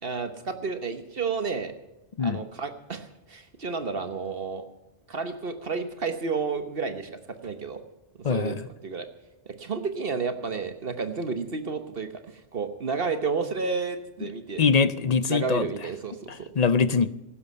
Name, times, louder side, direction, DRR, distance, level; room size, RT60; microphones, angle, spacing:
voice 1, 0.0-1.7 2.2-4.7 5.1-7.1 7.4-7.8 8.3-9.1 9.5-14.6 15.3-16.5, right 4 dB, 55° right, 9 dB, 1.3 m, -31 dB
voice 2, 14.6-15.7 16.6-17.1, left 5 dB, 45° left, 16 dB, 0.6 m, -22 dB
16.0 x 12.5 x 5.4 m, 0.95 s
omnidirectional pair, 1.2 m